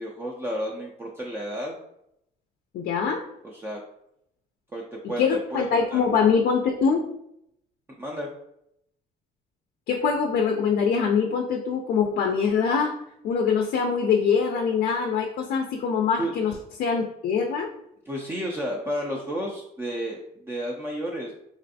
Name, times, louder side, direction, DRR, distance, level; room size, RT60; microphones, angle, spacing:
voice 1, 0.0-1.8 3.4-3.8 4.7-5.2 5.5-6.0 8.0-8.3 16.2-16.3 18.1-21.3, equal, 15° right, -2 dB, 0.4 m, -32 dB
voice 2, 2.7-3.2 5.0-7.0 9.9-12.9 13.2-17.7, left 6 dB, 60° left, 3 dB, 0.4 m, -23 dB
3.1 x 2.5 x 2.7 m, 0.78 s
cardioid pair, 110°, 17 cm